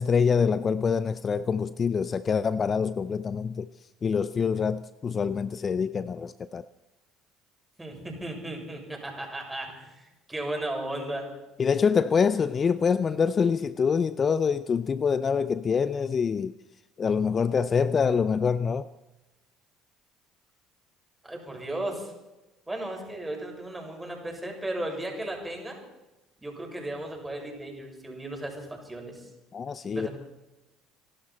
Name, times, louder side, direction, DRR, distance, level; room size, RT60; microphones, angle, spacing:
voice 1, 0.0-3.7 4.0-6.6 11.6-16.5 17.0-18.9 29.5-30.1, left 6 dB, 40° left, 0.6 m, -25 dB
voice 2, 7.8-11.3 21.2-22.1 22.7-25.8 26.4-29.3 29.9-30.1, right 1 dB, 15° right, 6.8 m, -35 dB
26.5 x 12.0 x 4.4 m
hypercardioid pair, 65°, 0 cm